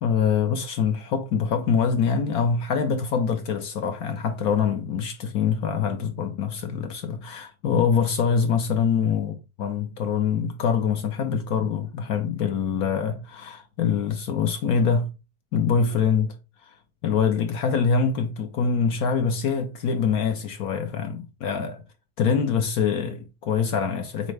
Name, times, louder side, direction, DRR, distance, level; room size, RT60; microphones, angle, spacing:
voice 1, 0.0-15.1 15.5-16.3 16.6-16.8 17.0-21.8 22.2-24.3, left 6 dB, 65° left, 1.0 m, -24 dB
5.4 x 2.0 x 4.7 m
omnidirectional pair, 2.0 m